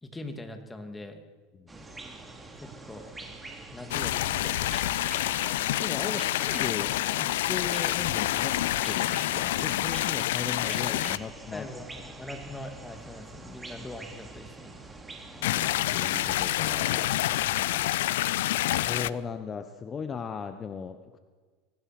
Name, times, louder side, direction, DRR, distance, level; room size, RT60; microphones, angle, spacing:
voice 1, 0.0-1.2 2.5-3.1 3.7-4.9 11.5-11.9 12.2-14.9, left 1 dB, 10° left, 6 dB, 2.6 m, -42 dB
voice 2, 1.5-1.8 5.8-8.6 8.8-11.7 15.3-17.1 18.7-21.2, left 6 dB, 25° left, 9 dB, 1.1 m, -37 dB
sound 1, 1.7-17.9, right 2 dB, 10° right, 3.3 m, -45 dB
sound 2, 3.9-11.2 15.4-19.1, left 15 dB, 85° left, 0.5 m, -27 dB
24.5 x 18.0 x 6.1 m, 1.5 s
supercardioid pair, 125°, 0 cm